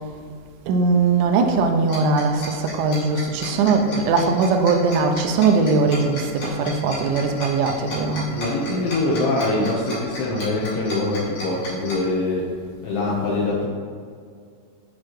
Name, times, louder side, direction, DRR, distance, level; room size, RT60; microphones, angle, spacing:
voice 1, 0.7-8.3, right 4 dB, 80° right, 5 dB, 2.8 m, -20 dB
Tick-tock, 1.9-11.9, left 2 dB, 50° left, 3.1 m, -34 dB
voice 2, 8.3-12.5 12.8-13.7, left 2 dB, 75° left, -5 dB, 3.4 m, -23 dB
8.4 x 7.4 x 3.1 m, 2.1 s
omnidirectional pair, 5.8 m